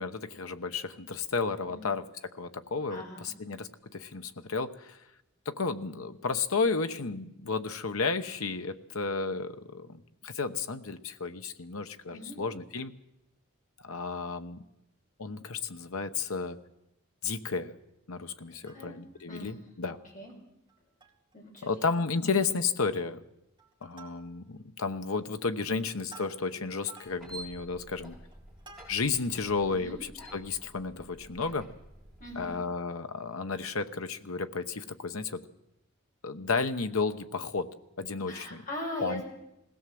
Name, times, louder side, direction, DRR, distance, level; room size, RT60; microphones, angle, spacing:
voice 1, 0.0-5.0 5.4-12.9 13.8-14.6 15.2-16.6 17.2-17.7 18.1-20.0 21.6-23.2 23.8-28.2 28.9-31.7 32.4-35.4 36.2-38.6 39.0-39.2, left 4 dB, 75° left, 9 dB, 1.0 m, -32 dB
voice 2, 2.9-3.3 12.1-12.4 18.5-18.9 19.3-19.5 19.9-20.3 21.3-21.9 22.2-22.3 29.7-30.0 32.2-32.5 38.3-39.2, left 1 dB, 35° left, -1 dB, 5.5 m, -41 dB
Plucked string instrument, 18.4-19.2 19.7-19.8 20.0-20.2 20.7-21.3 21.7-21.8 22.1-22.5 22.8-23.2 23.6-24.6 25.2-29.3 29.8-29.9, right 4 dB, 20° right, 2.3 m, -55 dB
sound 1, 27.0-32.6, right 1 dB, ahead, 6.3 m, -50 dB
20.5 x 16.5 x 7.7 m, 0.88 s
head